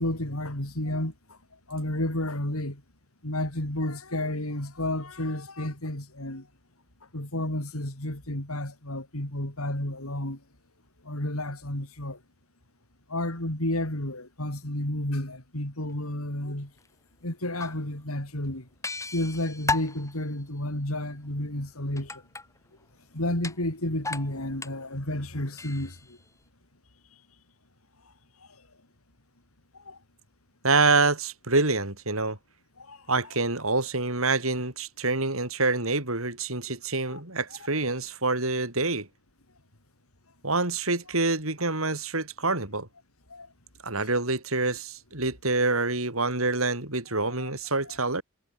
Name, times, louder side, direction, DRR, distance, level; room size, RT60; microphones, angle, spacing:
voice 1, 0.0-1.4 1.7-2.8 3.2-6.5 7.1-10.4 11.0-12.2 13.1-16.7 17.2-18.7 19.1-22.2 23.1-26.2 29.9-30.0 32.8-33.0 37.1-37.2 43.3-43.5 47.4-47.5 47.9-48.2, left 1 dB, 90° left, 5.3 m, -31 dB
sound 1, 15.9-16.0 16.8-16.9 17.5-17.8 18.1-18.2 18.8-20.4 22.0-22.8 23.3-23.6 24.0-24.8 25.2-26.3, left 3 dB, 15° left, 7.7 m, -34 dB
voice 2, 30.6-32.4 33.1-39.1 40.4-42.9 43.8-48.2, right 3 dB, 75° right, 7.1 m, -26 dB
head